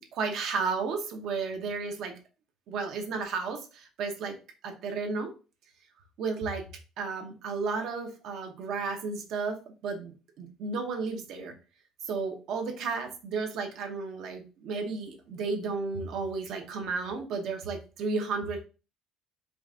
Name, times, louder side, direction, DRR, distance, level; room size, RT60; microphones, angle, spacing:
voice 1, 0.0-2.1 2.7-4.4 4.6-5.3 6.2-6.7 7.0-11.5 12.1-18.7, right 4 dB, 55° right, 3 dB, 1.0 m, -33 dB
4.9 x 2.5 x 3.6 m, 0.33 s
cardioid pair, 175°, 0 cm